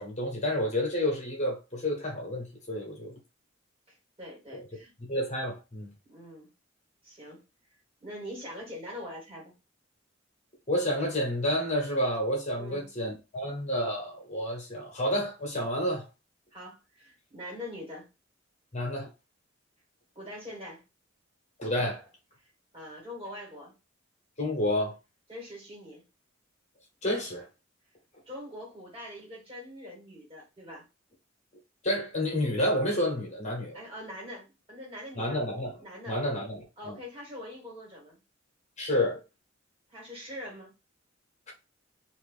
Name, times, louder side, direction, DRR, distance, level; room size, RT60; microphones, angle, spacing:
voice 1, 0.0-3.1 4.5-4.6 5.1-5.9 10.7-16.0 18.7-19.1 21.6-22.0 24.4-24.9 27.0-27.5 31.8-33.8 35.2-37.0 38.8-39.2, left 1 dB, 40° left, 1.1 m, -30 dB
voice 2, 3.9-4.9 6.1-6.5 7.0-7.4 8.0-9.5 12.6-12.9 16.5-18.1 20.2-20.8 22.7-23.7 25.3-26.0 28.3-30.8 33.7-35.4 35.8-36.2 36.8-38.2 39.9-40.7, left 1 dB, 30° right, 1.8 m, -43 dB
2.9 x 2.6 x 3.6 m
head